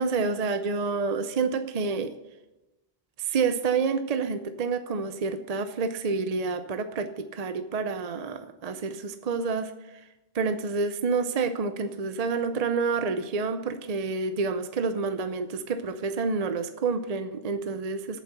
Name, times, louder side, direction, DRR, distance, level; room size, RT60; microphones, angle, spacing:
voice 1, 0.0-2.1 3.2-9.7 10.3-18.2, right 4 dB, 45° right, 9 dB, 0.6 m, -28 dB
8.5 x 7.4 x 8.0 m, 1.0 s
omnidirectional pair, 1.1 m